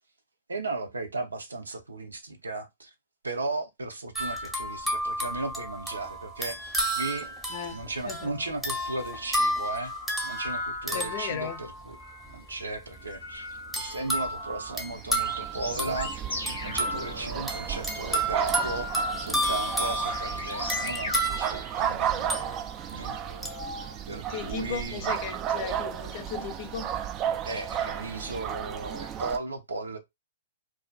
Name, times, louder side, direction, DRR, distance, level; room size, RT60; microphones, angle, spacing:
voice 1, 0.5-2.9 3.2-6.6 6.9-7.3 7.7-9.9 10.2-12.0 12.3-13.5 13.8-22.5 22.9-23.1 24.1-25.1 27.4-30.0, right 3 dB, 85° right, 0.5 m, -36 dB
sound 1, 4.2-12.0 13.7-22.9 23.4-23.7, right 1 dB, 5° right, 0.7 m, -32 dB
voice 2, 7.5-8.4 10.9-11.6 24.3-26.9, left 8 dB, 45° left, 0.5 m, -36 dB
sound 2, 8.0-8.6 8.9-12.4 12.9-18.0 18.4-24.0 25.5-25.6, left 2 dB, 90° left, 0.7 m, -40 dB
sound 3, 14.1-29.4, right 9 dB, 30° right, 0.3 m, -34 dB
2.3 x 2.3 x 2.2 m
hypercardioid pair, 120°, 0 cm